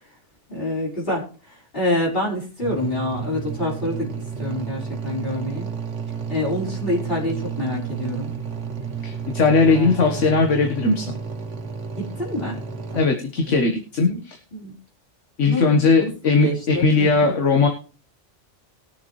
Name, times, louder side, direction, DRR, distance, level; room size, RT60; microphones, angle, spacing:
voice 1, 0.5-4.1 4.4-5.7 6.3-8.3 9.7-10.3 12.0-12.6 12.9-13.1 13.5-13.6 14.1-14.2 14.5-14.7 15.4-15.7 16.0-16.1 16.4-17.1, left 1 dB, 50° left, -7 dB, 5.2 m, -27 dB
sound 1, 2.6-13.0, right 6 dB, 75° right, 1.6 m, -31 dB
voice 2, 9.0-11.1 13.0-14.4 15.4-17.7, left 4 dB, 80° left, 3 dB, 1.8 m, -19 dB
21.0 x 7.0 x 3.2 m, 0.36 s
omnidirectional pair, 1.2 m